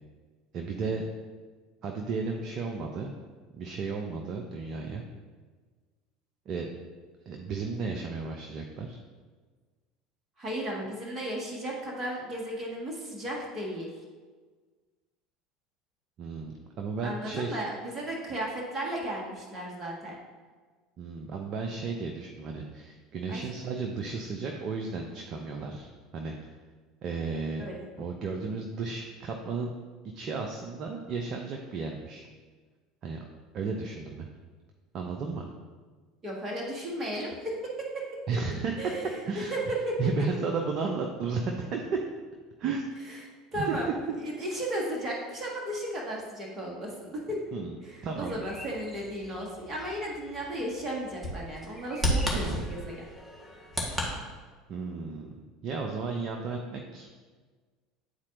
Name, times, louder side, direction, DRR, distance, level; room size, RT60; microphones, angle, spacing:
voice 1, 0.5-1.1 1.8-3.1 3.5-5.0 6.5-6.7 7.3-9.0 16.2-17.6 21.0-26.6 27.0-27.6 28.0-29.7 30.1-32.3 33.0-33.2 33.5-34.3 34.9-35.5 38.3-38.7 39.2-39.6 40.0-41.8 42.6-42.8 43.6-44.0 47.5-47.8 48.0-48.4 52.3-52.6 54.7-55.3 55.6-57.1, right 4 dB, 45° right, 2 dB, 0.5 m, -33 dB
voice 2, 10.4-13.9 17.0-20.2 23.3-23.4 27.6-27.9 36.2-38.0 38.8-40.0 43.5-43.9 44.2-47.4 47.8-53.0, right 1 dB, 30° right, -2 dB, 1.6 m, -35 dB
Bird vocalization bird call bird song, 48.0-54.1, equal, 5° right, 1.5 m, -34 dB
9.5 x 4.2 x 2.6 m, 1.4 s
figure-of-eight pair, 70°, 0 cm